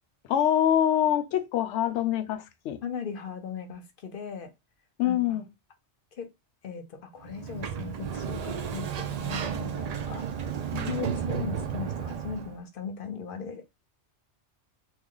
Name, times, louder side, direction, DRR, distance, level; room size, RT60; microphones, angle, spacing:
voice 1, 0.2-2.8 5.0-5.5, left 10 dB, 80° left, 0.9 m, -25 dB
voice 2, 2.8-4.5 5.0-5.4 6.2-6.3 6.6-10.2 10.7-13.6, left 6 dB, 55° left, 0.8 m, -38 dB
Sliding door, 7.2-12.6, right 7 dB, 65° right, 0.4 m, -33 dB
3.1 x 2.2 x 3.7 m
omnidirectional pair, 1.2 m